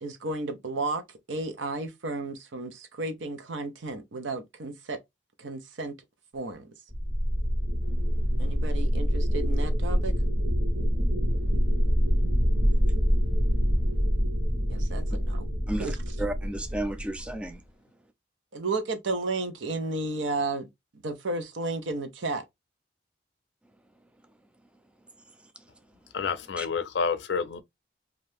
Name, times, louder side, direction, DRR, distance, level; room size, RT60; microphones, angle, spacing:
voice 1, 0.0-1.0 1.3-5.0 5.4-5.9 6.3-6.7 8.4-10.1 14.7-16.2 18.5-20.7 21.0-22.4, right 3 dB, 85° right, 0.7 m, -33 dB
sound 1, 6.9-17.5, equal, 35° right, 0.9 m, -25 dB
voice 2, 15.7-17.6 26.6-26.7, right 1 dB, 5° right, 0.3 m, -33 dB
voice 3, 26.1-27.6, left 5 dB, 65° left, 0.4 m, -29 dB
2.7 x 2.4 x 3.3 m
head